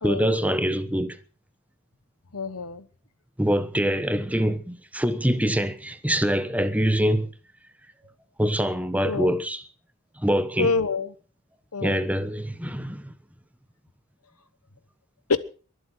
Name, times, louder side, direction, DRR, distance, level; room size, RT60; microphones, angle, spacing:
voice 1, 0.0-1.2 3.4-7.3 8.4-9.6 10.2-10.7 11.8-13.1, equal, 5° right, 1.1 m, -24 dB
voice 2, 2.3-2.8 9.0-9.3 10.6-11.1 11.7-12.0 15.3-15.4, left 4 dB, 80° left, 1.1 m, -26 dB
23.0 x 8.0 x 6.1 m
head